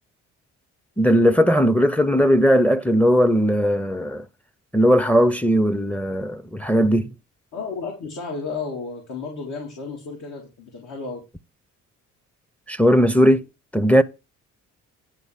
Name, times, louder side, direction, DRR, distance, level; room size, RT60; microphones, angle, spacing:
voice 1, 1.0-4.2 4.7-7.1 12.7-13.4 13.7-14.0, equal, 5° left, 0.6 m, -18 dB
voice 2, 7.5-11.2, left 4 dB, 70° left, 3.0 m, -32 dB
10.5 x 4.0 x 7.3 m
cardioid pair, 90°, 30 cm